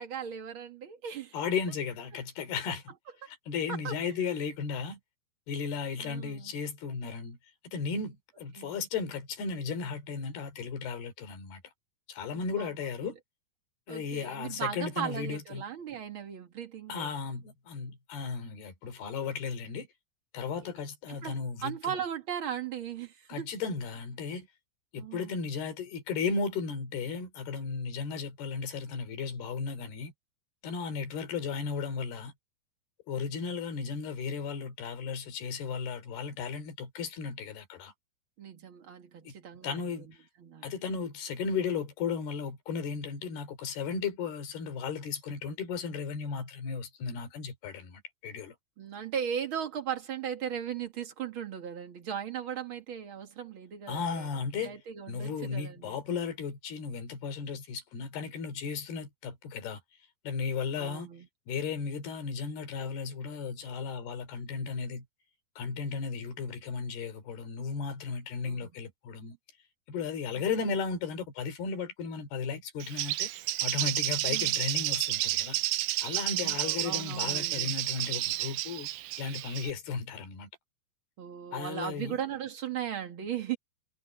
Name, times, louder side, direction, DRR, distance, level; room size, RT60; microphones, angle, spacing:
voice 1, 0.0-1.3 3.7-3.9 6.0-6.5 8.5-8.8 12.3-12.7 13.0-13.1 13.9-17.2 21.2-23.5 25.0-25.3 38.4-40.0 40.4-40.7 48.8-54.3 54.6-56.0 60.8-61.3 68.4-68.7 70.6-70.8 74.3-74.6 76.3-77.7 81.2-83.6, right 8 dB, 50° right, 1.6 m, -37 dB
voice 2, 1.3-2.9 3.3-5.0 5.5-7.4 7.7-11.6 12.1-13.2 13.9-15.6 16.9-19.9 20.3-21.9 23.3-24.5 24.9-30.1 30.6-32.3 33.1-37.9 39.2-39.3 39.6-40.1 40.6-48.6 53.9-54.8 55.1-59.8 60.2-61.1 61.5-65.0 65.6-69.4 69.9-73.3 73.6-75.6 76.0-78.9 79.2-80.5 81.5-82.2, left 5 dB, 65° left, 4.9 m, -35 dB
Bird, 72.8-79.7, right 16 dB, 85° right, 2.1 m, -31 dB
omnidirectional pair, 5.0 m